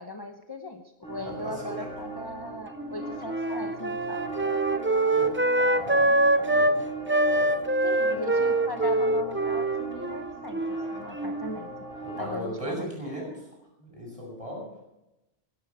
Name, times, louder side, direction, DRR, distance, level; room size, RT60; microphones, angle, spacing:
voice 1, 0.0-4.2 7.8-11.7 12.2-12.9, left 1 dB, 25° left, 3 dB, 1.0 m, -38 dB
sound 1, 1.0-12.4, right 3 dB, 5° left, 5.2 m, -39 dB
voice 2, 1.2-1.9 5.1-5.3 5.6-6.8 7.3-7.6 12.0-13.3 13.8-14.7, equal, 30° right, -1 dB, 7.1 m, -37 dB
Wind instrument woodwind instrument, 2.8-6.8 7.1-11.6, right 2 dB, 15° right, 0.5 m, -25 dB
18.0 x 12.0 x 4.9 m, 0.92 s
omnidirectional pair, 1.1 m